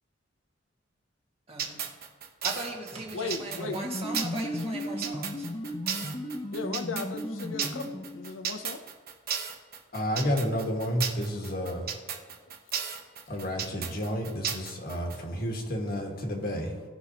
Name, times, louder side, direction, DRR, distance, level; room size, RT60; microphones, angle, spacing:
voice 1, 1.5-1.8 2.4-5.5 13.3-13.4, right 2 dB, 30° right, 1.8 m, -39 dB
sound 1, 1.6-15.2, right 7 dB, 50° right, 0.9 m, -34 dB
voice 2, 3.1-3.8 6.5-8.8, left 4 dB, 80° left, 0.6 m, -36 dB
sound 2, 3.5-8.4, left 1 dB, 25° left, 0.7 m, -35 dB
voice 3, 9.9-12.0 13.3-16.8, equal, 50° left, 1.6 m, -31 dB
17.5 x 5.9 x 2.9 m
head